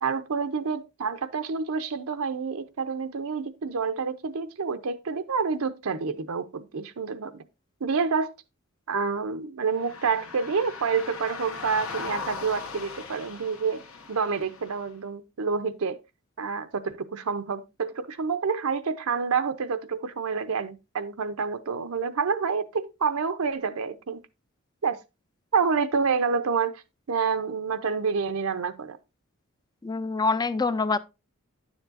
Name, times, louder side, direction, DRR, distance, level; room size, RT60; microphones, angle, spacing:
voice 1, 0.0-7.3 7.8-8.3 8.9-13.8 14.1-16.0 16.4-24.2 24.8-25.0 25.5-26.8 27.1-29.0, right 5 dB, 80° right, 0.6 m, -28 dB
sound 1, 9.7-14.9, left 5 dB, 75° left, 1.3 m, -39 dB
voice 2, 29.8-31.0, left 3 dB, 20° left, 0.4 m, -25 dB
9.7 x 7.1 x 2.5 m
head